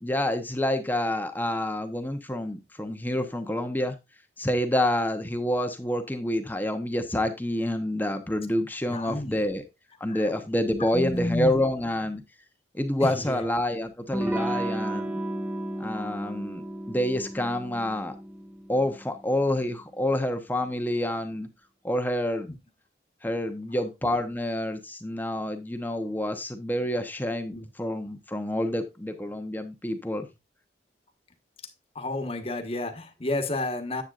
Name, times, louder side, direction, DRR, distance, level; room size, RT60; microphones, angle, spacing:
voice 1, 0.0-3.9 4.4-9.6 10.0-12.2 12.7-15.2 15.8-18.1 18.7-21.5 21.8-22.5 23.2-30.2, left 1 dB, 10° left, 0.9 m, -28 dB
voice 2, 8.9-9.4 10.1-10.3 10.8-11.6 13.0-13.5 22.5-22.6 27.5-27.7 31.9-34.0, left 1 dB, 35° left, 1.4 m, -31 dB
Electric guitar / Strum, 14.1-19.5, right 1 dB, 10° right, 1.2 m, -33 dB
10.5 x 7.9 x 2.5 m
head